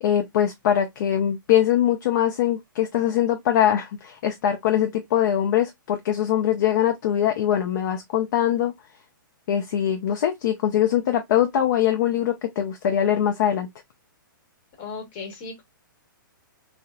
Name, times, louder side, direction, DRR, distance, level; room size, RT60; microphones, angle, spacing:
voice 1, 0.0-8.7 9.5-13.7, left 10 dB, 55° left, 0.4 m, -22 dB
voice 2, 14.8-15.6, left 4 dB, 40° left, 1.2 m, -36 dB
2.8 x 2.1 x 2.2 m
hypercardioid pair, 140°, 11 cm